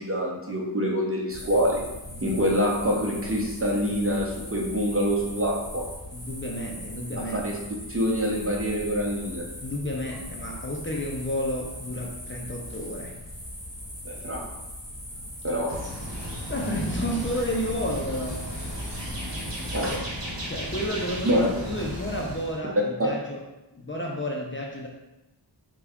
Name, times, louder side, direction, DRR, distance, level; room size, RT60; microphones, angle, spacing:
voice 1, 0.0-1.9 2.2-5.9 7.3-7.5 7.9-9.5 14.0-14.5 15.4-15.8 19.7-20.0 21.2-21.5, equal, 30° right, -2 dB, 0.7 m, -26 dB
sound 1, 1.3-20.0, left 1 dB, ahead, 1.4 m, -40 dB
voice 2, 2.1-2.4 6.1-7.4 9.6-13.1 16.5-18.7 20.5-23.4 23.7-24.9, equal, 30° left, -2 dB, 0.4 m, -31 dB
sound 2, 15.7-22.6, equal, 70° right, 0.9 m, -35 dB
3.6 x 2.2 x 3.5 m, 0.98 s
wide cardioid pair, 55°, 45 cm